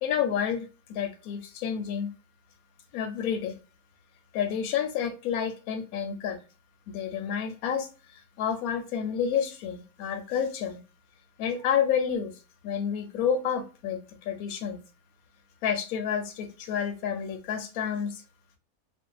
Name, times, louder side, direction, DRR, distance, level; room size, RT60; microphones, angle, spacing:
voice 1, 0.0-2.1 2.9-3.6 4.3-6.4 6.9-10.8 11.4-12.3 12.6-14.8 15.6-18.2, left 8 dB, 85° left, 7 dB, 1.1 m, -29 dB
2.5 x 2.3 x 2.2 m, 0.33 s
omnidirectional pair, 1.5 m